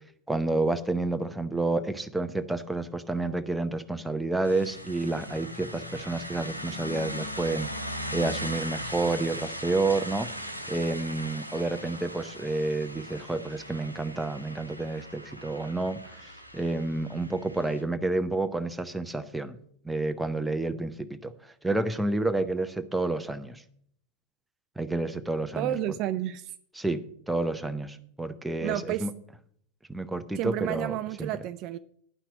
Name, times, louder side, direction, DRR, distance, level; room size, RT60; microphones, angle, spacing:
voice 1, 0.3-7.7 8.1-10.3 10.7-19.6 19.8-23.6 24.8-25.8 26.8-29.1 29.9-31.3, right 2 dB, 5° right, 0.7 m, -30 dB
sound 1, 4.4-17.8, equal, 90° right, 0.9 m, -39 dB
voice 2, 25.5-26.5 28.6-29.1 30.4-31.8, right 13 dB, 40° right, 0.4 m, -31 dB
10.0 x 5.8 x 8.2 m
figure-of-eight pair, 90°, 0 cm